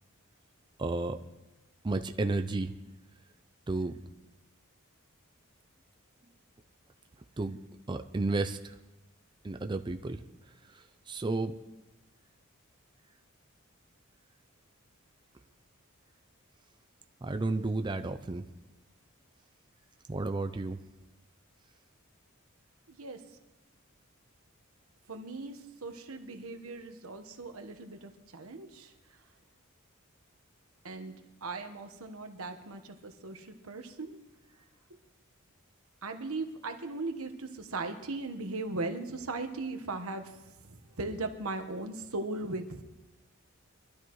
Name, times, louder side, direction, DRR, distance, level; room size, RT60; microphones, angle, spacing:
voice 1, 0.8-1.2 1.8-2.7 3.7-3.9 7.4-7.6 7.9-8.7 9.4-10.2 10.7-11.5 17.2-18.4 20.1-20.8, right 2 dB, 20° right, 7 dB, 0.4 m, -32 dB
voice 2, 22.9-23.2 25.1-28.9 30.8-34.2 36.0-42.8, right 3 dB, 85° right, 5 dB, 1.3 m, -38 dB
23.5 x 12.5 x 3.1 m, 1.0 s
head